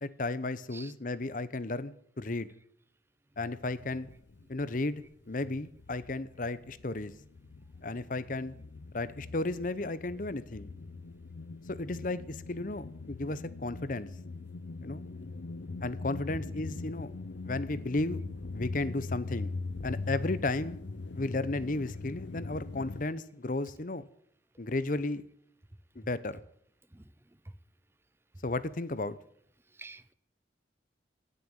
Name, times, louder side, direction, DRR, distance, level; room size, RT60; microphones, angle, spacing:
voice 1, 0.0-2.5 3.4-4.1 4.5-7.1 7.8-8.6 8.9-10.7 11.7-14.1 14.8-15.0 15.8-17.1 17.4-18.2 18.5-19.5 19.8-20.8 21.1-24.1 24.6-25.2 25.9-26.4 28.4-29.2, left 2 dB, 45° left, 0.9 m, -34 dB
sound 1, 3.4-5.0 5.3-23.0, left 3 dB, 85° left, 0.7 m, -41 dB
voice 2, 29.7-30.1, right 3 dB, 15° right, 0.7 m, -49 dB
18.5 x 6.8 x 9.0 m
head